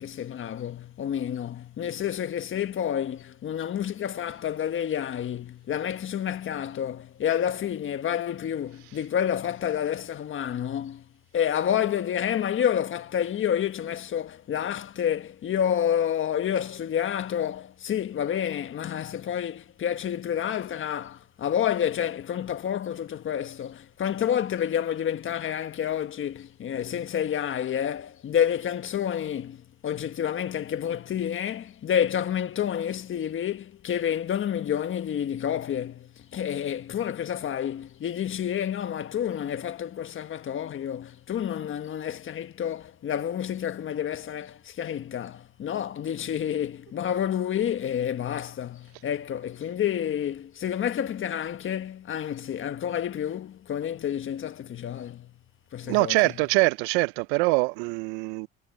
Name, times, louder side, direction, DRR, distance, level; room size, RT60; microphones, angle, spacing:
voice 1, 0.0-11.0 11.3-55.3 55.7-56.3, left 9 dB, 40° left, 1.5 m, -29 dB
voice 2, 55.9-58.5, right 28 dB, 90° right, 0.5 m, -23 dB
supercardioid pair, 100°, 30 cm